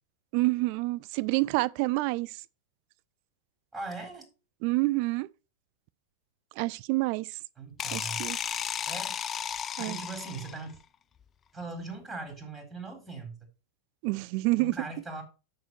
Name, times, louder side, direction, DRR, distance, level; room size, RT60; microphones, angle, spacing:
voice 1, 0.3-2.4 4.6-5.3 6.6-7.3 7.9-8.4 9.8-10.0 14.0-14.8, right 22 dB, 50° right, 0.4 m, -28 dB
voice 2, 3.7-4.3 7.6-8.3 8.8-10.8 11.5-13.4 14.5-15.2, right 3 dB, 15° right, 3.8 m, -40 dB
sound 1, 7.8-10.7, left 8 dB, 25° left, 0.4 m, -34 dB
8.0 x 6.5 x 4.7 m
figure-of-eight pair, 95°, 0 cm